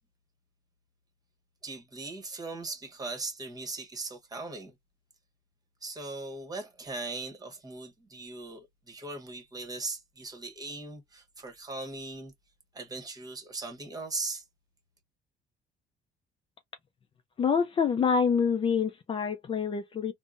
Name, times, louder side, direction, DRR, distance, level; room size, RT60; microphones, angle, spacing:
voice 1, 1.6-4.7 5.8-12.3 12.7-14.4, right 3 dB, 20° right, 1.2 m, -39 dB
voice 2, 17.4-20.1, left 6 dB, 30° left, 0.4 m, -26 dB
3.5 x 2.1 x 2.5 m
cardioid pair, 110°, 17 cm